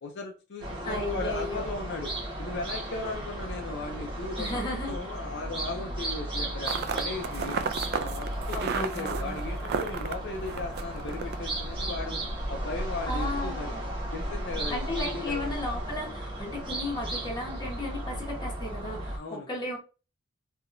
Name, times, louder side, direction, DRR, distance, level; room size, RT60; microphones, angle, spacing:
voice 1, 0.0-2.1 2.4-4.6 4.9-7.6 8.0-12.2 12.5-13.7 14.1-15.6 19.2-19.5, left 3 dB, 60° left, 0.6 m, -37 dB
sound 1, 0.6-19.2, right 1 dB, 25° right, 1.0 m, -35 dB
voice 2, 0.8-1.7 4.4-5.0 8.5-9.4 13.0-13.8 14.7-19.8, left 1 dB, 20° left, 1.2 m, -35 dB
sound 2, 6.7-12.0, right 6 dB, 50° right, 0.4 m, -34 dB
3.4 x 2.8 x 2.6 m
head